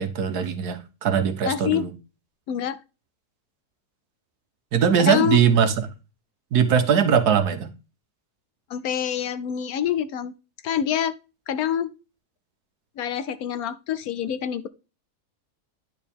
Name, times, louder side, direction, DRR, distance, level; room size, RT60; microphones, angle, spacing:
voice 1, 0.0-1.9 4.7-5.7 6.5-7.7, right 7 dB, 75° right, 1.6 m, -20 dB
voice 2, 1.5-1.8 2.5-2.8 5.0-5.4 8.7-10.3 10.6-11.1 11.5-11.9 13.0-14.7, left 9 dB, 70° left, 1.1 m, -26 dB
9.9 x 4.8 x 3.6 m
omnidirectional pair, 1.7 m